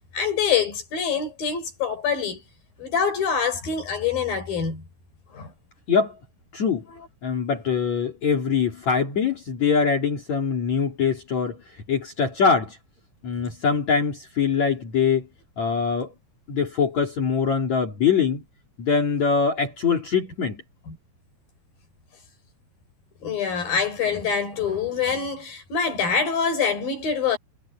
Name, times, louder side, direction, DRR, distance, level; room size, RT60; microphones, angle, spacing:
voice 1, 0.1-2.4 2.8-4.8 5.3-5.5 20.9-21.0 23.2-27.4, left 6 dB, 75° left, 7.1 m, -25 dB
voice 2, 6.5-6.8 7.2-12.8 13.2-15.3 15.6-16.1 16.5-18.4 18.8-20.6, left 6 dB, 50° left, 4.5 m, -23 dB
omnidirectional pair, 4.2 m